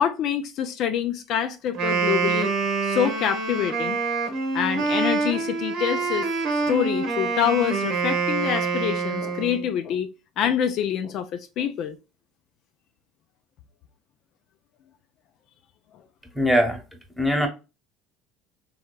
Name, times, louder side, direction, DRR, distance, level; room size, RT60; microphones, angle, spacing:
voice 1, 0.0-2.5 2.8-4.0 4.5-6.3 6.6-10.1 10.4-12.0, left 9 dB, 60° left, 0.4 m, -26 dB
Wind instrument woodwind instrument, 1.7-9.7, right 4 dB, 65° right, 1.0 m, -26 dB
voice 2, 16.3-16.8 17.2-17.5, equal, ahead, 1.0 m, -21 dB
3.4 x 2.8 x 2.2 m
supercardioid pair, 90°, 0 cm